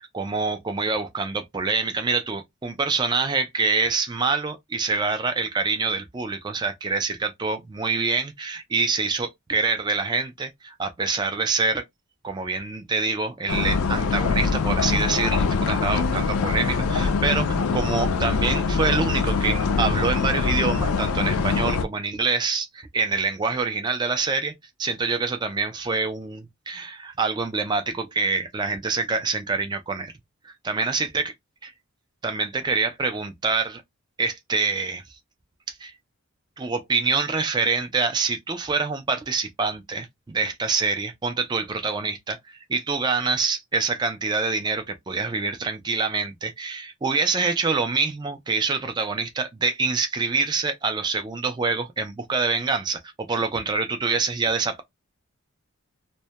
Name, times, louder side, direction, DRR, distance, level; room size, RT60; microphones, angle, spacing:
voice 1, 0.0-11.8 12.2-24.5 24.8-30.1 30.4-31.3 31.6-31.7 32.2-33.8 34.2-35.0 35.7-35.9 36.6-54.8, right 4 dB, 20° right, 0.3 m, -26 dB
sound 1, 13.5-21.9, left 4 dB, 80° left, 0.4 m, -23 dB
2.1 x 2.1 x 2.7 m
head